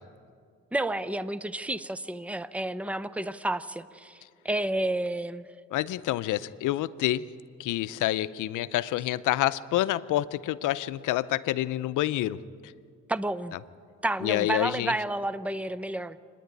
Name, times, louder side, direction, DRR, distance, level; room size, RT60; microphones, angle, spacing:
voice 1, 0.7-5.4 13.1-13.5 14.0-16.2, right 1 dB, 5° right, 15 dB, 0.6 m, -30 dB
voice 2, 5.7-7.3 7.6-12.4 14.2-14.9, left 14 dB, 85° left, 15 dB, 0.6 m, -28 dB
27.0 x 10.0 x 9.6 m, 2.2 s
cardioid pair, 90°, 30 cm